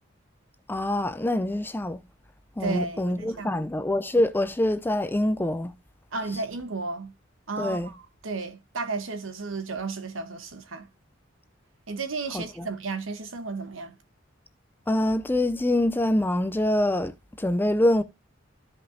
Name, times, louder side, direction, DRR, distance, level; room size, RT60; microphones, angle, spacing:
voice 1, 0.7-2.0 2.6-5.7 7.6-7.9 12.3-12.7 14.9-18.0, left 1 dB, 10° left, 0.5 m, -25 dB
voice 2, 2.6-3.6 6.1-7.1 7.5-10.9 11.9-14.0, right 3 dB, 75° right, 1.1 m, -33 dB
13.0 x 5.4 x 2.7 m
head